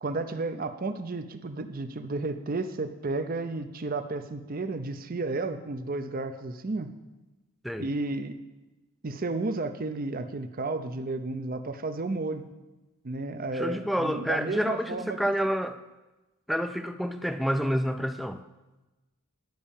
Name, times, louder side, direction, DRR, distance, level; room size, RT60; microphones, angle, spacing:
voice 1, 0.0-6.9 7.8-8.4 9.0-12.5 13.0-15.3, right 3 dB, 40° right, 10 dB, 0.6 m, -32 dB
voice 2, 13.5-15.8 16.5-18.4, equal, ahead, 9 dB, 0.4 m, -28 dB
10.5 x 5.3 x 7.1 m, 1.1 s
head